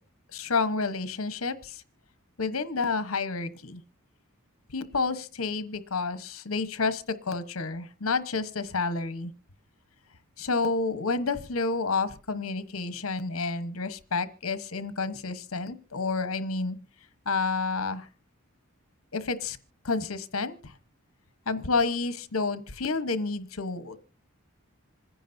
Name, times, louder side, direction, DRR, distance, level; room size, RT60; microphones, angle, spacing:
voice 1, 0.3-1.8 2.4-3.8 4.7-9.3 10.4-16.8 17.2-18.1 19.1-19.6 19.8-20.7 21.5-24.0, left 4 dB, 75° left, 12 dB, 1.1 m, -30 dB
27.0 x 10.0 x 2.7 m, 0.36 s
head